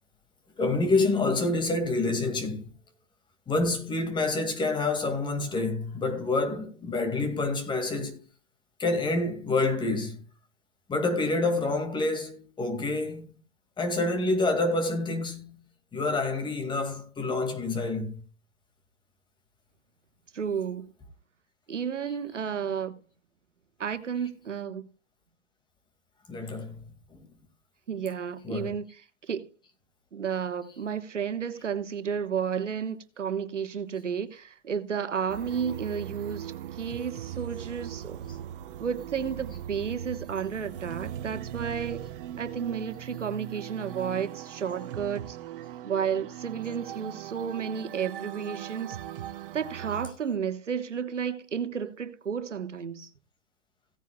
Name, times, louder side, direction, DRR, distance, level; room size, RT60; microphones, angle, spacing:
voice 1, 0.6-2.6 3.5-8.2 8.8-10.2 10.9-13.2 13.8-15.7 15.9-18.2 26.3-26.8 27.1-27.2 28.4-28.7, left 2 dB, 15° left, 2.1 m, -27 dB
voice 2, 20.3-20.9 21.7-23.0 23.8-24.9 27.9-29.5 30.1-38.2 38.8-42.0 42.3-45.4 45.8-49.0 49.5-53.1, right 7 dB, 85° right, 1.4 m, -32 dB
sound 1, 35.3-50.1, right 11 dB, 50° right, 1.2 m, -39 dB
17.0 x 9.4 x 2.3 m
hypercardioid pair, 130°, 36 cm